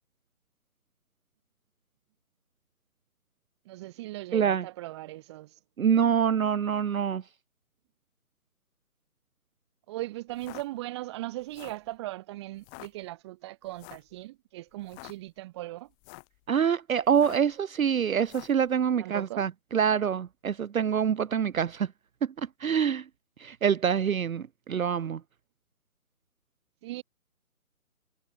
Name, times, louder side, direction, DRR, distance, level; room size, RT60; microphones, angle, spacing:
voice 1, 3.7-5.5 9.9-15.9 19.0-19.4 26.8-27.0, right 17 dB, 20° right, 2.2 m, -38 dB
voice 2, 4.3-4.7 5.8-7.2 16.5-21.9 22.2-23.1 23.4-25.2, right 8 dB, 65° right, 0.7 m, -26 dB
sound 1, 10.3-10.6 11.4-11.9 12.6-12.9 13.8-14.1 14.8-15.1 15.9-16.4 17.1-17.5 18.2-18.6, left 39 dB, 5° left, 1.0 m, -47 dB
figure-of-eight pair, 155°, 44 cm